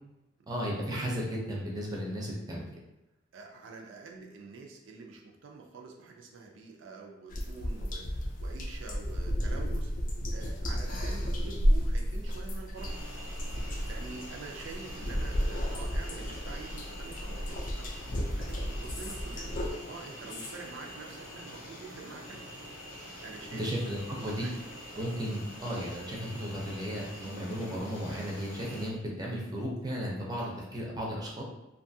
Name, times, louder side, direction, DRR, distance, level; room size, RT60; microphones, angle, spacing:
voice 1, 0.5-2.7 23.5-24.5 25.0-30.4 30.7-31.4, equal, 20° right, -3 dB, 0.5 m, -34 dB
voice 2, 3.3-9.9 10.3-13.0 13.6-17.9 18.3-22.5 23.2-23.7 24.1-24.5 24.9-25.1 30.4-30.7, right 4 dB, 85° right, 1 dB, 0.4 m, -47 dB
sound 1, 7.3-19.7, equal, 45° left, 0.3 m, -32 dB
sound 2, 12.8-28.9, left 1 dB, 90° left, 0.7 m, -45 dB
2.6 x 2.3 x 2.6 m, 0.96 s
head